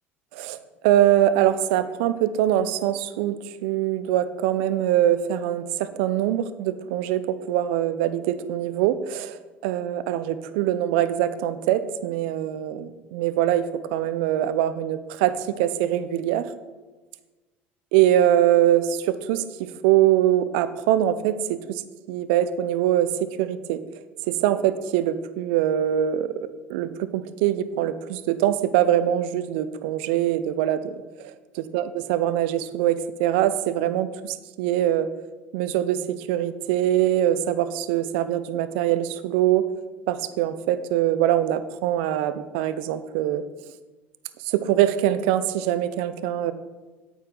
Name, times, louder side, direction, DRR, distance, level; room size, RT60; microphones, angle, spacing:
voice 1, 0.3-16.4 17.9-21.8 22.1-23.1 23.4-23.8 24.3-26.3 26.7-30.9 31.2-31.3 31.7-35.1 35.5-39.6 40.1-43.4 44.5-46.5, right 12 dB, 70° right, 13 dB, 0.5 m, -23 dB
8.7 x 8.2 x 3.9 m, 1.3 s
hypercardioid pair, 65°, 6 cm